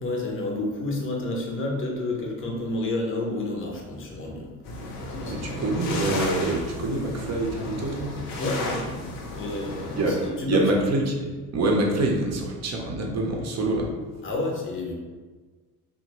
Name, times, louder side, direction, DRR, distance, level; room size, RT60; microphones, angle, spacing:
voice 1, 0.0-4.5 5.1-5.6 8.4-8.9 9.3-10.6 14.2-14.9, left 2 dB, 25° left, 0 dB, 0.7 m, -30 dB
sound 1, 4.6-10.3, left 2 dB, 75° left, 0.7 m, -34 dB
voice 2, 5.2-8.1 9.9-10.2 10.5-13.9, right 2 dB, 35° right, 0 dB, 0.7 m, -25 dB
2.8 x 2.2 x 2.9 m, 1.3 s
hypercardioid pair, 60°, 46 cm